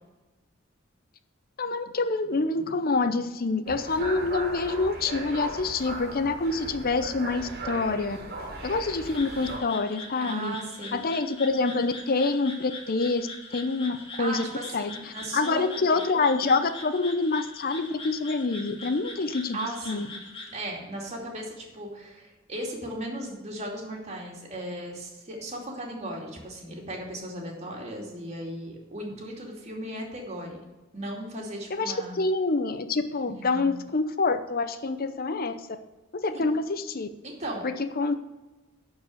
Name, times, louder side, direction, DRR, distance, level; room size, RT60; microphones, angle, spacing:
voice 1, 1.6-8.2 8.6-10.5 10.9-14.5 14.7-14.9 15.3-19.6 19.9-20.1 31.7-35.6 36.1-37.1 37.6-38.1, left 3 dB, 50° left, 10 dB, 0.7 m, -26 dB
sound 1, 3.7-9.6, right 2 dB, 50° right, 2.3 m, -37 dB
sound 2, 9.1-20.6, left 3 dB, 30° left, 1.8 m, -42 dB
voice 2, 10.2-11.0 14.2-16.2 19.5-20.1 20.5-30.6 30.9-32.2 33.2-33.8 36.3-36.5 37.2-37.7, right 1 dB, 35° right, -1 dB, 2.6 m, -37 dB
11.5 x 4.8 x 7.8 m, 1.1 s
head